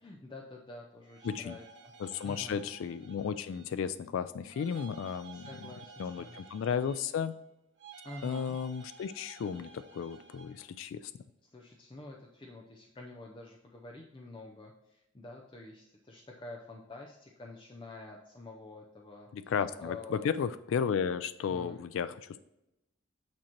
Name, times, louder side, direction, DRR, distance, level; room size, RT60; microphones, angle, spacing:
voice 1, 0.0-1.9 2.2-2.6 5.3-6.4 8.0-8.6 11.5-19.5 19.8-20.3 21.4-21.8, left 2 dB, 25° left, -1 dB, 0.5 m, -48 dB
sound 1, 1.0-3.8 4.5-7.3 7.8-10.7, right 5 dB, 60° right, 1.7 m, -53 dB
voice 2, 1.2-1.6 2.0-5.5 6.0-7.4 8.2-11.1 19.3-22.4, left 7 dB, 80° left, 13 dB, 0.3 m, -34 dB
8.7 x 2.9 x 4.4 m, 0.90 s
head